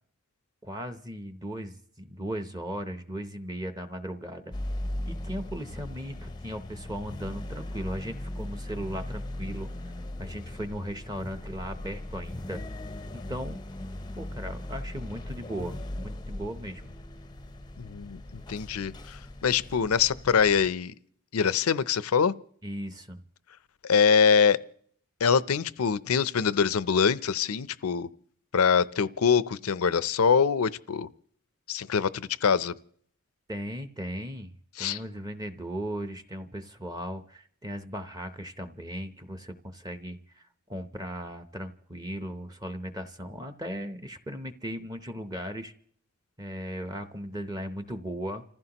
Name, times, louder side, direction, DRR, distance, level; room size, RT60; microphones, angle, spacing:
voice 1, 0.6-4.5 5.0-9.7 10.2-12.6 13.1-13.6 14.2-16.9 22.6-23.2 33.5-45.7 46.4-48.4, equal, 15° right, 0.7 m, -37 dB
sound 1, 4.5-20.7, left 1 dB, 20° left, 0.5 m, -38 dB
voice 2, 17.8-18.2 18.5-20.9 21.3-22.3 23.8-24.6 25.2-28.1 28.5-31.1 31.7-32.7 34.8-35.0, left 6 dB, 85° left, 0.5 m, -24 dB
29.5 x 15.0 x 2.9 m
head